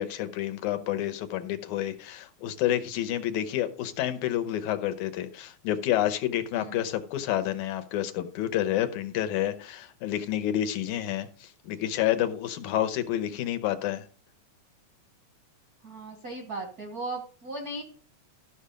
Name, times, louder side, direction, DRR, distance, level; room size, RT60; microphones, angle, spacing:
voice 1, 0.0-14.0, left 12 dB, 85° left, 2.3 m, -29 dB
voice 2, 6.5-6.8 15.8-17.8, right 2 dB, 65° right, 0.9 m, -37 dB
13.0 x 5.6 x 5.0 m
omnidirectional pair, 3.4 m